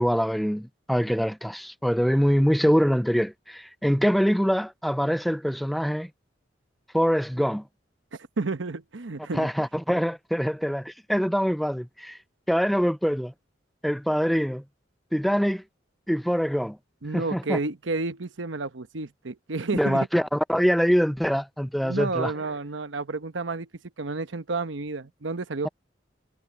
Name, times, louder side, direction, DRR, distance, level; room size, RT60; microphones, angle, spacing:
voice 1, 0.0-6.1 6.9-7.6 9.3-12.2 12.5-13.3 13.8-14.6 15.1-15.6 16.1-16.8 17.1-17.6 19.7-22.3, equal, ahead, 0.4 m, -24 dB
voice 2, 8.4-9.5 17.0-20.1 21.8-23.7 24.0-25.7, right 3 dB, 85° right, 1.0 m, -31 dB
head